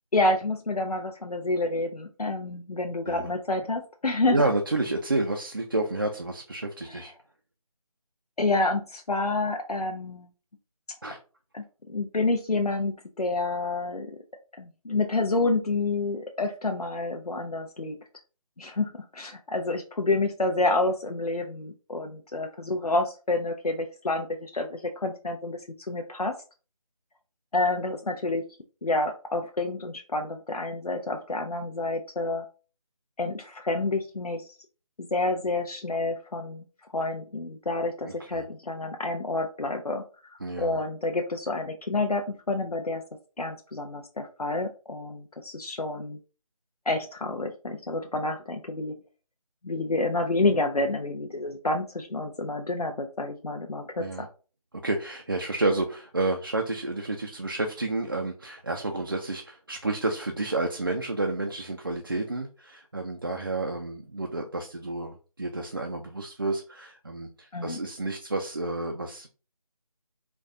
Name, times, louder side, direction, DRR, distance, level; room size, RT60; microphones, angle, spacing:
voice 1, 0.1-4.4 6.9-7.0 8.4-10.3 11.5-14.1 14.6-18.0 18.6-26.3 27.5-28.4 28.8-32.4 33.2-34.5 35.0-36.7 36.9-40.0 40.6-43.0 43.4-46.2 46.9-49.0 49.6-54.3 67.5-67.8, left 2 dB, 90° left, 4 dB, 0.6 m, -28 dB
voice 2, 4.3-7.1 11.0-11.2 38.1-38.4 40.4-40.8 54.0-54.3 54.8-69.3, right 2 dB, 35° right, 2 dB, 0.4 m, -30 dB
4.1 x 2.2 x 3.7 m, 0.35 s
figure-of-eight pair, 160°, 19 cm